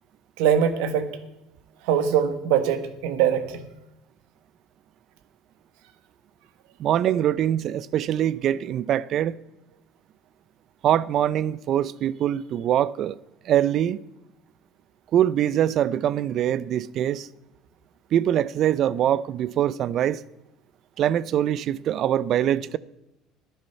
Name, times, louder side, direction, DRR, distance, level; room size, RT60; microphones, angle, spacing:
voice 1, 0.4-1.1 1.8-3.7, right 8 dB, 80° right, 1.3 m, -22 dB
voice 2, 6.8-9.4 10.8-13.2 13.4-14.0 15.1-17.3 18.1-20.2 21.0-22.8, right 11 dB, 55° right, 0.4 m, -23 dB
11.0 x 9.8 x 5.6 m
supercardioid pair, 100°, 0 cm